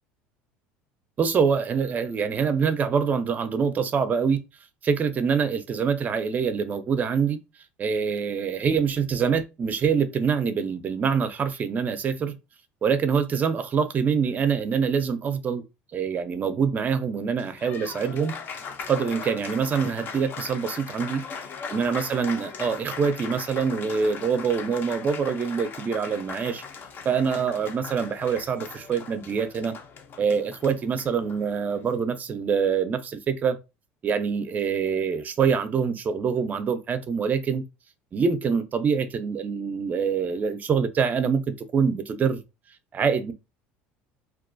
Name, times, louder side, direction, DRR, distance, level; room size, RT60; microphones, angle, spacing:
voice 1, 1.2-4.4 4.8-7.4 7.8-12.3 12.8-15.6 15.9-18.3 18.9-21.2 21.7-26.6 27.0-29.8 30.2-33.6 34.0-37.6 38.1-42.4 42.9-43.3, right 6 dB, 30° right, 0.4 m, -25 dB
Applause, 17.2-31.9, left 6 dB, 40° left, 0.4 m, -39 dB
2.3 x 2.2 x 2.5 m
supercardioid pair, 110°, 5 cm